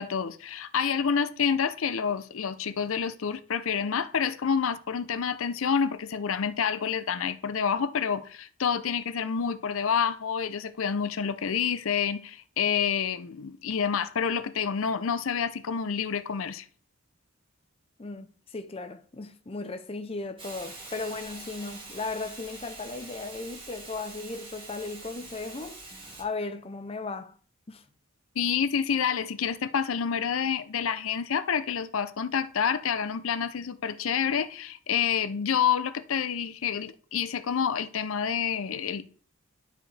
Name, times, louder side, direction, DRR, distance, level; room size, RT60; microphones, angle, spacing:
voice 1, 0.0-16.6 28.4-39.0, left 7 dB, 70° left, 0.5 m, -28 dB
voice 2, 18.0-25.8 26.2-27.4 27.7-27.8, left 3 dB, 25° left, 0.6 m, -36 dB
Hiss, 20.4-26.2, right 3 dB, 25° right, 2.0 m, -44 dB
11.5 x 5.0 x 3.3 m
head